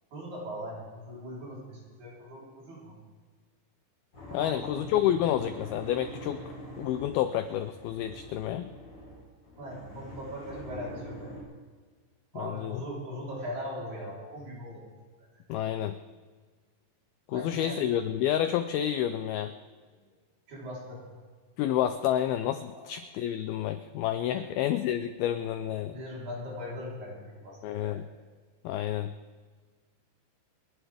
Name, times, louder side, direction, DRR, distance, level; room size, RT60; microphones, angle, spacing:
voice 1, 0.1-3.0 4.3-4.8 9.6-11.3 12.3-14.8 15.2-15.3 17.3-17.8 20.5-21.0 24.3-24.5 25.9-28.0, equal, 45° right, -5 dB, 5.1 m, -40 dB
sound 1, 4.1-11.4, equal, 30° left, 5.2 m, -45 dB
voice 2, 4.3-6.4 6.8-8.7 12.4-12.8 15.5-16.0 17.3-19.5 21.6-26.0 27.6-28.0 28.6-29.1, left 11 dB, 85° left, 10 dB, 2.2 m, -29 dB
29.0 x 11.0 x 3.5 m, 1.5 s
omnidirectional pair, 5.0 m